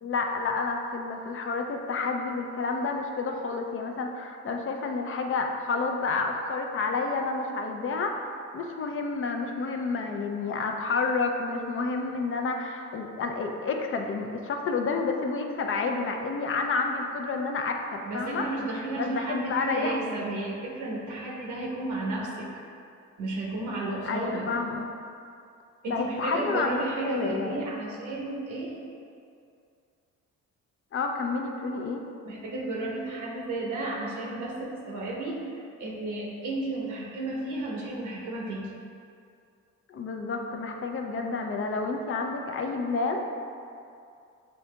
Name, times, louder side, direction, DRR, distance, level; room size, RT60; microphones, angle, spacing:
voice 1, 0.0-18.5 19.0-20.2 24.1-24.9 25.9-27.6 30.9-32.0 39.9-43.2, left 4 dB, 45° left, 3 dB, 0.5 m, -30 dB
voice 2, 18.0-22.6 23.2-24.5 25.8-28.8 32.2-38.7, right 2 dB, 80° right, -3 dB, 1.0 m, -33 dB
7.1 x 2.7 x 2.2 m, 2.4 s
cardioid pair, 90°, 30 cm